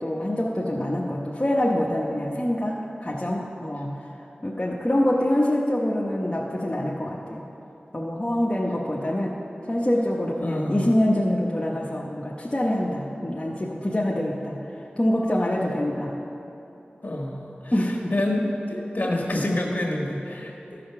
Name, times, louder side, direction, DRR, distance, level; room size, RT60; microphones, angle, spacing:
voice 1, 0.0-4.1 4.4-7.4 7.9-9.3 9.6-16.1 17.7-18.1, left 1 dB, 25° left, -4 dB, 0.9 m, -25 dB
voice 2, 10.4-10.9 17.0-17.7 18.1-20.8, left 1 dB, 50° left, -1 dB, 1.6 m, -27 dB
13.5 x 5.0 x 5.8 m, 2.9 s
wide cardioid pair, 50°, 4 cm